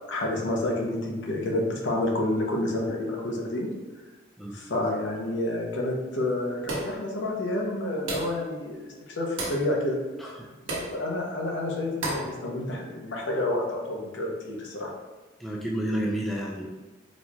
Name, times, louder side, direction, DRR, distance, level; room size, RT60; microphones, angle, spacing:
voice 1, 0.1-3.7 4.5-10.0 10.6-14.9, left 1 dB, 60° left, -1 dB, 0.7 m, -29 dB
sound 1, 6.7-7.0 8.1-8.4 9.4-9.7 10.7-11.0 12.0-12.3, right 2 dB, 80° right, 0.9 m, -32 dB
voice 2, 15.4-16.7, right 1 dB, ahead, -4 dB, 0.3 m, -30 dB
4.1 x 3.0 x 2.3 m, 1.2 s
head